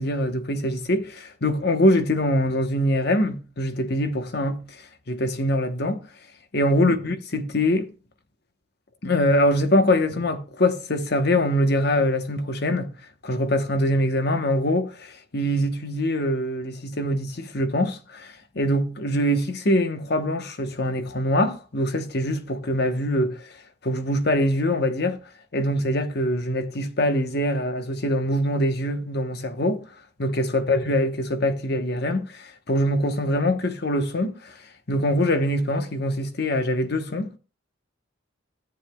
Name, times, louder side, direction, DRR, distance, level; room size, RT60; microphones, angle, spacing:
voice 1, 0.0-4.8 5.1-6.0 6.5-7.9 9.0-12.9 13.2-23.5 23.8-25.2 25.5-29.8 30.2-34.6 34.9-37.4, left 1 dB, 55° left, 1.0 m, -23 dB
13.5 x 9.3 x 2.3 m
head